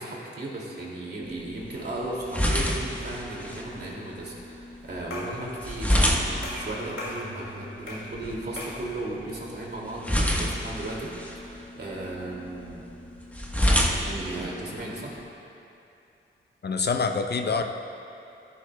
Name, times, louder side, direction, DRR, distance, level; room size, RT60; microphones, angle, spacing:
voice 1, 0.0-12.8 13.9-15.1 17.4-17.6, right 2 dB, 55° right, -4 dB, 2.4 m, -36 dB
sound 1, 1.3-15.2, equal, 5° left, 1.2 m, -30 dB
sound 2, 5.1-5.4 5.9-6.2 6.4-7.2 7.9-8.1 8.6-8.8, left 2 dB, 75° left, 2.4 m, -37 dB
voice 2, 16.6-17.6, left 4 dB, 50° left, 6 dB, 0.6 m, -26 dB
14.0 x 10.5 x 2.2 m, 2.7 s
cardioid pair, 65°, 21 cm